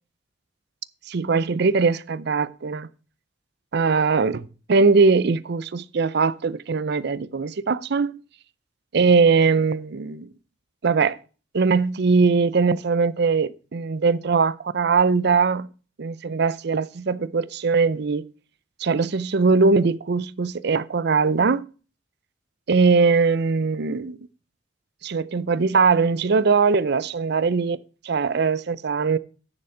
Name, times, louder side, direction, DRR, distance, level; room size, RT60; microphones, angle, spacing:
voice 1, 1.1-2.9 3.7-8.2 8.9-10.3 10.8-11.2 11.5-15.7 16.0-18.2 18.8-21.7 22.7-24.2 25.0-27.8 28.0-29.2, right 4 dB, 60° right, 0.5 m, -21 dB
9.8 x 7.0 x 4.9 m
head